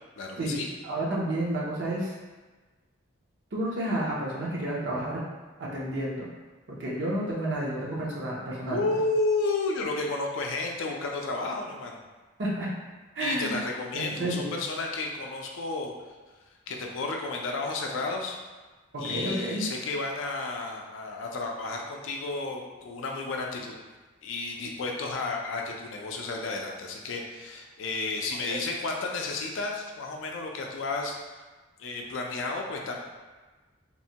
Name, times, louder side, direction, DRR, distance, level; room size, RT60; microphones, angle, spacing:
voice 1, 0.2-0.7 8.7-12.0 13.2-15.9 16.7-18.4 19.0-23.7 24.2-31.4 31.8-33.0, left 3 dB, 75° left, 1 dB, 0.4 m, -32 dB
voice 2, 0.8-2.1 3.5-5.2 5.6-6.3 6.7-8.8 12.4-12.7 13.2-13.6 13.9-14.5 18.9-19.6 28.5-28.6, right 1 dB, 55° right, -5 dB, 0.6 m, -30 dB
3.0 x 2.1 x 2.7 m, 1.3 s
head